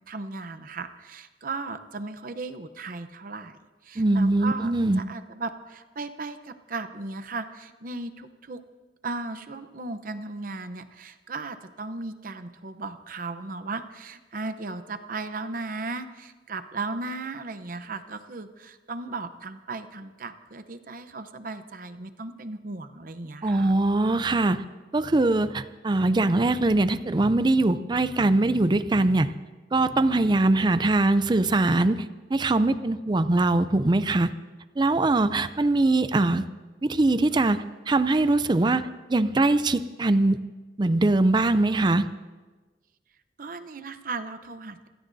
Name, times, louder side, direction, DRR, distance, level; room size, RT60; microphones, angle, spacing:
voice 1, 0.1-3.6 3.8-8.6 9.0-23.7 43.4-44.9, right 3 dB, 50° right, 10 dB, 0.8 m, -36 dB
voice 2, 4.0-5.0 23.4-24.6 24.9-29.3 29.7-34.3 34.8-36.4 36.8-40.4 40.8-42.1, right 2 dB, 25° right, 13 dB, 0.4 m, -22 dB
26.5 x 16.5 x 2.7 m, 1.3 s
head